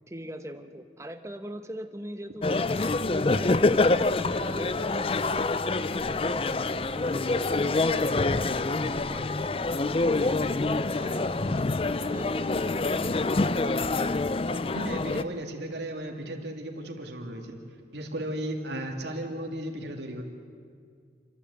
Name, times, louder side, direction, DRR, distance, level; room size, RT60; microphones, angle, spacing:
voice 1, 0.1-3.6 3.9-8.3 8.8-9.6 10.2-11.6 12.0-13.7, right 1 dB, 15° right, 7 dB, 1.0 m, -42 dB
sound 1, 2.4-15.2, left 3 dB, 30° left, 0.5 m, -26 dB
voice 2, 14.7-17.6 17.9-20.2, right 1 dB, 70° right, 2 dB, 2.7 m, -35 dB
29.5 x 12.0 x 8.3 m, 2.2 s
head